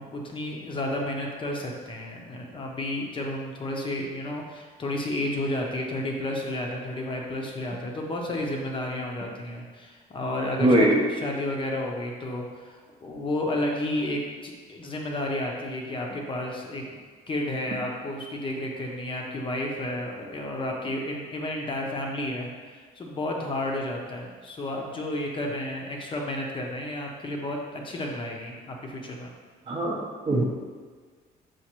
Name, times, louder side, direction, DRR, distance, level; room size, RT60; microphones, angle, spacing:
voice 1, 0.0-17.0 17.3-22.5 22.9-29.3, left 1 dB, 30° left, 0 dB, 0.6 m, -31 dB
voice 2, 10.6-11.0 29.7-30.4, right 1 dB, 30° right, 0 dB, 0.6 m, -21 dB
5.9 x 2.5 x 2.9 m, 1.5 s
cardioid pair, 110°, 17 cm